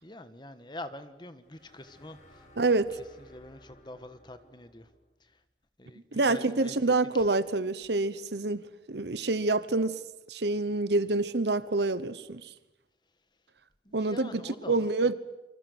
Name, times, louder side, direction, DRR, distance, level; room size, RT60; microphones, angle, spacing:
voice 1, 0.0-2.8 3.2-4.9 5.2-5.4 5.8-7.3 13.8-15.1, left 1 dB, 25° left, 10 dB, 1.4 m, -46 dB
sound 1, 1.4-5.2, left 1 dB, 40° left, 5.9 m, -58 dB
voice 2, 2.6-3.0 6.1-10.0 10.3-12.5 13.9-15.1, right 3 dB, 70° right, 14 dB, 1.0 m, -27 dB
30.0 x 24.5 x 8.0 m, 1.0 s
head